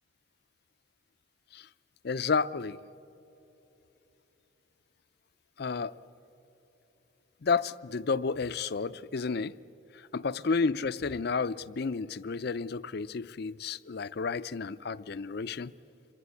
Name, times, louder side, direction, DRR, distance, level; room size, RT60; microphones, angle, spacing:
voice 1, 2.0-2.8 5.6-5.9 7.4-9.6 9.9-15.7, left 4 dB, 55° left, 0.5 m, -31 dB
26.5 x 22.5 x 8.5 m
head